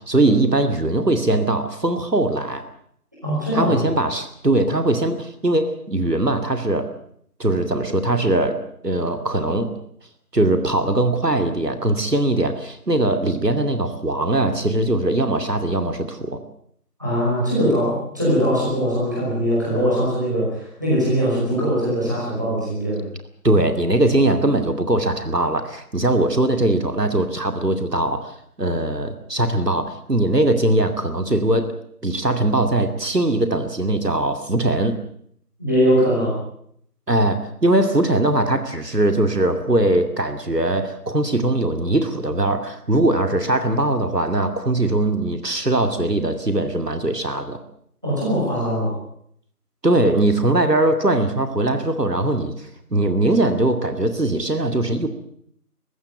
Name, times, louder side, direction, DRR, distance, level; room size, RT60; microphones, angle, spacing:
voice 1, 0.0-2.6 3.5-6.9 7.4-9.7 10.3-16.4 23.4-31.7 32.0-35.0 37.1-47.6 49.8-55.1, right 2 dB, 85° right, 8 dB, 2.6 m, -21 dB
voice 2, 3.2-3.8 17.0-23.0 35.6-36.3 48.0-48.9, equal, 10° right, -7 dB, 5.4 m, -21 dB
20.0 x 15.5 x 9.2 m, 0.68 s
figure-of-eight pair, 180°, 47 cm